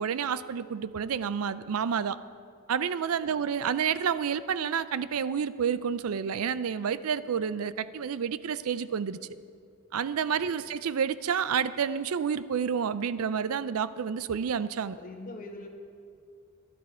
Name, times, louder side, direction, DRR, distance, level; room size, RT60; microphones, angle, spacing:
voice 1, 0.0-2.2 2.7-9.2 9.9-15.0, right 7 dB, 85° right, 15 dB, 0.4 m, -29 dB
voice 2, 10.3-10.7 14.9-15.7, left 2 dB, 40° left, 2 dB, 1.5 m, -44 dB
13.5 x 12.0 x 4.4 m, 2.2 s
head